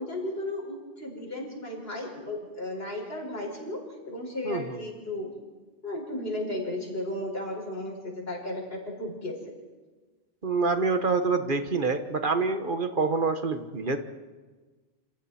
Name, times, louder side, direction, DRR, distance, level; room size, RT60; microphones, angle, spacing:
voice 1, 0.0-5.3 5.8-9.4, left 1 dB, 70° left, -1 dB, 5.7 m, -34 dB
voice 2, 4.4-4.8 10.4-14.0, right 4 dB, 55° right, 8 dB, 1.5 m, -26 dB
29.0 x 27.5 x 4.4 m, 1.3 s
omnidirectional pair, 1.1 m